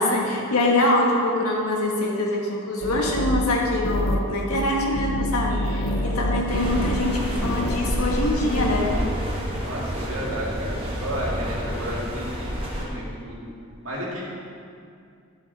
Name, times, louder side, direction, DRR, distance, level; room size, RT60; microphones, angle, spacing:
voice 1, 0.0-8.9, left 1 dB, 80° left, -2 dB, 1.6 m, -24 dB
sound 1, 2.8-8.8, left 1 dB, 50° left, 0.5 m, -28 dB
voice 2, 5.5-6.1 9.6-13.5 13.8-14.2, equal, 65° right, -5 dB, 2.4 m, -33 dB
sound 2, 6.5-12.9, equal, 25° right, 1.5 m, -29 dB
10.5 x 7.6 x 4.2 m, 2.3 s
head